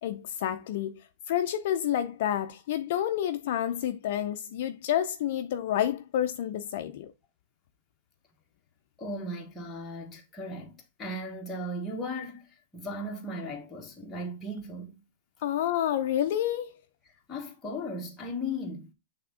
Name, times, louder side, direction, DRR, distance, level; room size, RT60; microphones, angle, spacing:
voice 1, 0.0-7.1 15.4-16.8, left 11 dB, 40° left, 0.5 m, -29 dB
voice 2, 9.0-12.5 12.7-15.0 17.3-18.9, left 1 dB, 10° left, 1.0 m, -36 dB
8.1 x 3.5 x 3.7 m
supercardioid pair, 180°, 0 cm